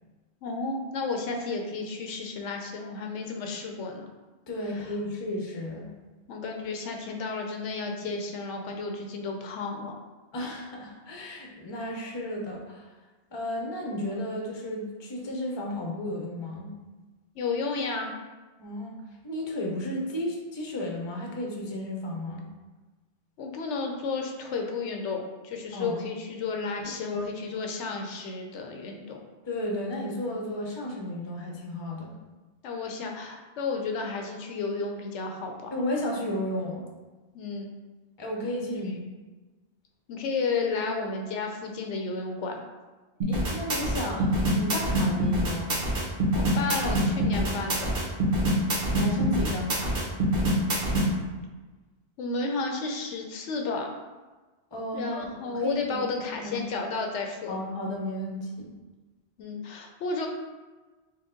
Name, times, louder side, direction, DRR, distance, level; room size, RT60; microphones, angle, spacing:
voice 1, 0.4-4.1 6.3-9.9 17.4-18.1 23.4-29.2 32.6-35.7 37.3-37.7 40.1-42.6 46.3-47.9 52.2-53.9 54.9-57.6 59.4-60.3, left 4 dB, 85° left, 2 dB, 0.9 m, -32 dB
voice 2, 4.5-5.9 10.3-13.0 13.3-16.7 18.6-19.0 19.2-22.5 25.7-26.0 26.9-27.2 29.4-32.2 35.7-36.8 38.2-39.0 43.3-45.7 48.9-50.0 54.7-56.0 56.4-56.7 57.5-58.7, left 1 dB, 30° left, -1 dB, 0.6 m, -33 dB
sound 1, 43.2-51.1, equal, 55° right, 1.1 m, -25 dB
4.6 x 2.2 x 3.7 m, 1.2 s
omnidirectional pair, 1.2 m